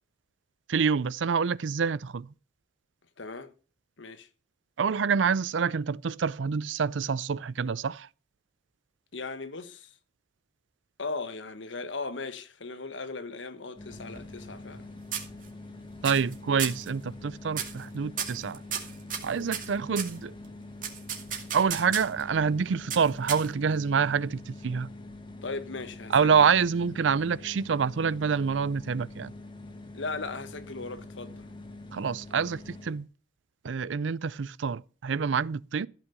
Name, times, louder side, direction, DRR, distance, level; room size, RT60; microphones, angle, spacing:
voice 1, 0.7-2.3 4.8-8.1 16.0-18.6 19.2-20.3 21.5-24.9 26.1-29.3 31.9-33.1 33.6-35.9, right 6 dB, 80° right, 0.5 m, -27 dB
voice 2, 3.2-3.5 4.0-4.3 9.1-9.9 11.0-14.9 25.4-26.6 29.9-31.5, left 3 dB, 85° left, 1.2 m, -38 dB
sound 1, 13.7-33.0, left 2 dB, 25° left, 1.4 m, -45 dB
sound 2, 13.9-14.8 15.1-15.7 16.0-16.3 16.6-16.9 17.5-17.8 18.2-20.2 20.8-22.2 22.9-23.7, right 8 dB, 45° right, 2.3 m, -34 dB
15.0 x 5.9 x 6.8 m
head